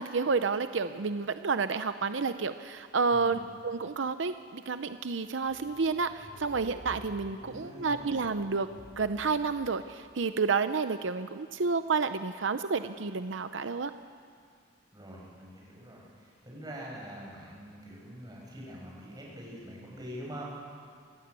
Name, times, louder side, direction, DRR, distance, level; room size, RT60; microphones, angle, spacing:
voice 1, 0.0-13.9, right 4 dB, 80° right, 10 dB, 0.7 m, -30 dB
voice 2, 3.1-3.4 7.3-8.1 14.9-20.4, equal, 20° right, -3 dB, 6.7 m, -45 dB
sound 1, 5.4-10.2, equal, 75° left, 3.3 m, -51 dB
27.5 x 15.5 x 8.4 m, 2.2 s
head